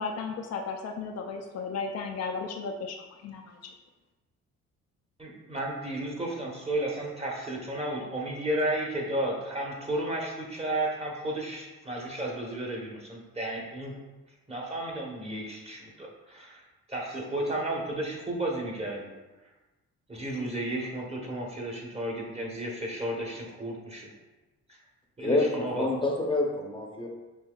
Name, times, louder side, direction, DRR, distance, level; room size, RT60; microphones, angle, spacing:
voice 1, 0.0-3.0 3.2-3.7, left 4 dB, 60° left, 3 dB, 0.4 m, -34 dB
voice 2, 5.2-13.9 14.5-16.6 16.9-19.1 20.1-24.1 25.2-25.9, right 1 dB, 20° right, -2 dB, 1.1 m, -33 dB
voice 3, 25.2-27.1, left 2 dB, 15° left, 0 dB, 0.7 m, -27 dB
5.9 x 2.7 x 2.3 m, 1.1 s
supercardioid pair, 70°, 30 cm